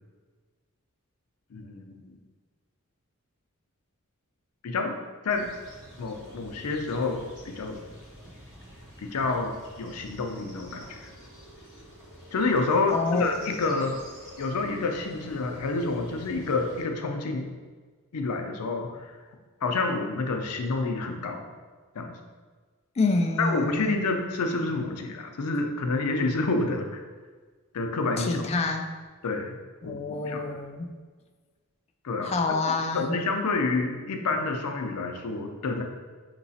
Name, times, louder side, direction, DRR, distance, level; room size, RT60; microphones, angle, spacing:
voice 1, 1.5-2.1 4.6-4.9 5.2-5.5 6.0-7.2 7.4-7.8 9.0-11.1 12.3-14.0 14.4-17.5 18.1-19.1 19.6-21.4 21.9-22.2 23.4-27.0 27.7-28.4 29.2-29.6 29.8-30.6 32.0-32.3 32.9-35.8, left 3 dB, 85° left, 4 dB, 0.5 m, -28 dB
sound 1, 5.3-16.8, equal, 20° right, 1.4 m, -48 dB
voice 2, 12.9-13.6 23.0-24.1 28.2-28.9 29.8-30.9 32.2-33.2, left 3 dB, 30° left, 5 dB, 0.3 m, -28 dB
5.5 x 3.0 x 2.7 m, 1.4 s
head